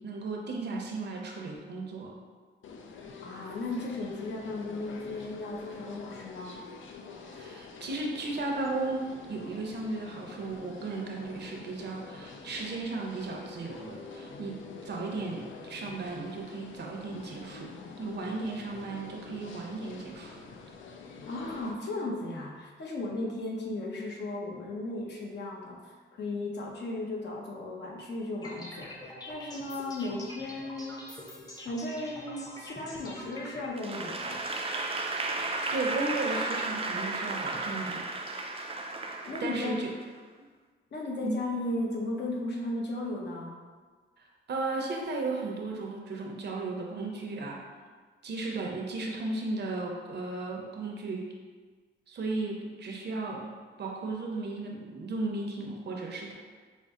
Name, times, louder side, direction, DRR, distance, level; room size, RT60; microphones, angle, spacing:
voice 1, 0.0-2.1 7.2-17.7 18.0-20.4 35.7-38.1 39.4-39.9 41.2-41.4 44.2-47.6 48.2-51.3 52.1-53.5 53.8-56.3, right 3 dB, 60° right, 0 dB, 0.7 m, -35 dB
sound 1, 2.6-21.7, left 4 dB, 85° left, 0.4 m, -46 dB
voice 2, 3.2-6.6 21.3-31.0 31.6-34.5 39.2-39.8 40.9-43.6, left 2 dB, 60° left, -2 dB, 0.8 m, -36 dB
sound 2, 28.4-33.7, left 1 dB, 20° left, 0.7 m, -44 dB
Applause / Crowd, 33.8-40.0, right 2 dB, 30° right, 0.4 m, -34 dB
5.3 x 2.0 x 3.6 m, 1.5 s
cardioid pair, 110°, 20 cm